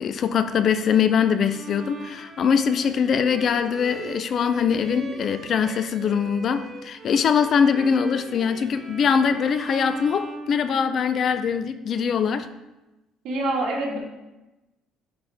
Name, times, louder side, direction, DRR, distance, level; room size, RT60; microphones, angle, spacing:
voice 1, 0.0-12.5, left 7 dB, 40° left, 11 dB, 0.4 m, -22 dB
Bowed string instrument, 1.5-11.3, right 2 dB, 20° right, 0.9 m, -41 dB
voice 2, 13.2-14.0, right 2 dB, 60° right, -2 dB, 1.9 m, -25 dB
11.5 x 4.0 x 3.4 m, 1.0 s
cardioid pair, 155°, 0 cm